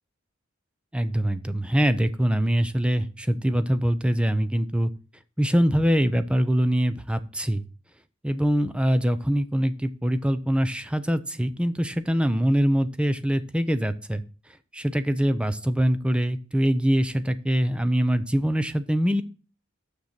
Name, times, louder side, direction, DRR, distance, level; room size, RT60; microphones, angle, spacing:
voice 1, 0.9-4.9 5.4-7.6 8.2-14.2 14.7-19.2, equal, 5° right, 12 dB, 0.6 m, -23 dB
6.7 x 6.6 x 7.4 m, 0.36 s
head